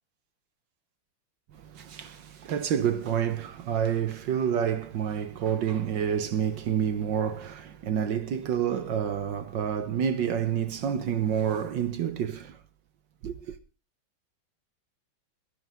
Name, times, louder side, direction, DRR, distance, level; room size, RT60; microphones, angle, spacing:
voice 1, 1.7-12.6 13.2-13.5, right 8 dB, 65° right, 1.5 m, -28 dB
22.0 x 10.0 x 3.5 m
omnidirectional pair, 2.3 m